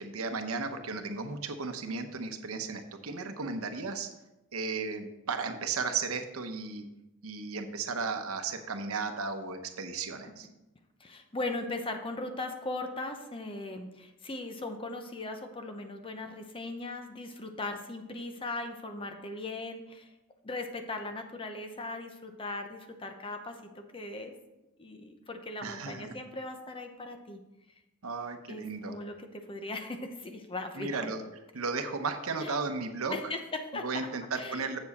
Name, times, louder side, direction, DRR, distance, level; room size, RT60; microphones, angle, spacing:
voice 1, 0.0-4.1 4.5-6.8 7.2-10.5 25.6-26.2 28.0-29.0 30.7-31.2 31.5-33.2 33.7-34.8, right 4 dB, 85° right, 7 dB, 0.9 m, -35 dB
voice 2, 11.0-20.1 20.4-24.3 24.8-27.4 28.5-31.1 32.4-32.5 33.1-34.1 34.3-34.7, left 2 dB, 25° left, 6 dB, 0.8 m, -38 dB
7.8 x 7.1 x 4.2 m, 0.97 s
head